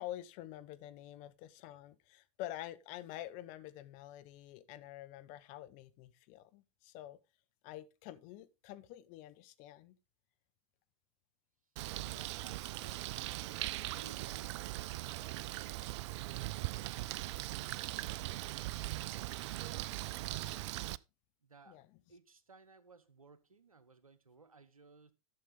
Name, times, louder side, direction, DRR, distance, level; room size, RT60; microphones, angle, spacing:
voice 1, 0.0-7.2 7.6-10.0 21.7-21.8, left 13 dB, 45° left, 1.0 m, -48 dB
Bird, 11.8-21.0, right 17 dB, 55° right, 0.4 m, -40 dB
voice 2, 12.0-15.8 21.4-25.1, right 4 dB, 90° right, 0.9 m, -60 dB
11.5 x 6.4 x 3.8 m
figure-of-eight pair, 85°, 18 cm